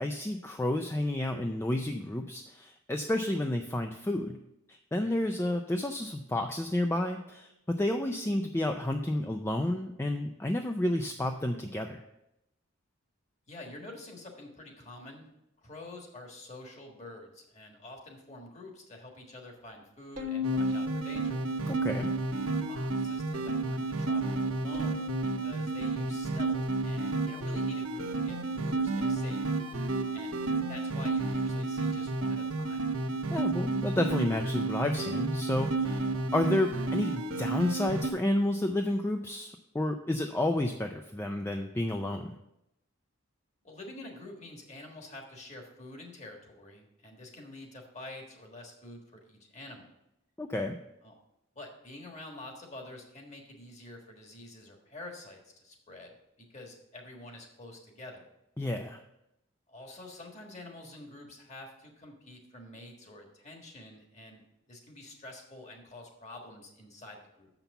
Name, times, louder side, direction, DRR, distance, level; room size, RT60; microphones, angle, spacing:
voice 1, 0.0-4.4 4.7-12.0 21.7-22.1 33.3-42.3 50.4-50.8 58.6-59.0, left 1 dB, 10° left, 5 dB, 0.4 m, -31 dB
voice 2, 13.5-15.3 15.6-21.4 22.7-29.4 30.1-30.4 30.7-32.9 36.0-36.2 43.6-49.9 51.0-51.1 51.5-58.3 59.7-64.4 64.7-67.5, left 1 dB, 35° left, 2 dB, 1.5 m, -48 dB
Bowed string instrument, 20.2-22.5 23.0-23.8 24.7-27.3, left 5 dB, 45° right, 1.1 m, -38 dB
sound 1, 20.4-38.1, right 3 dB, 90° right, 1.0 m, -31 dB
6.9 x 5.9 x 6.9 m, 0.85 s
head